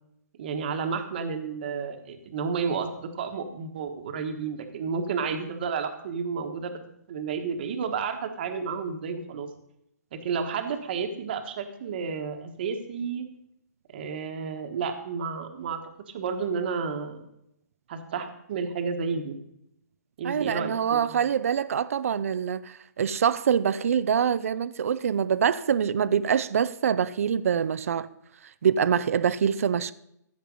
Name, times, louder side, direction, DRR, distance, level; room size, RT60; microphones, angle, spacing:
voice 1, 0.4-6.8 7.1-9.5 10.1-13.2 13.9-15.8 16.1-17.2 17.9-19.3 20.2-21.2, right 5 dB, 35° right, 1.4 m, -31 dB
voice 2, 20.2-28.1 28.6-29.9, right 7 dB, 55° right, 0.5 m, -25 dB
15.5 x 7.4 x 5.3 m
hypercardioid pair, 170°, 9 cm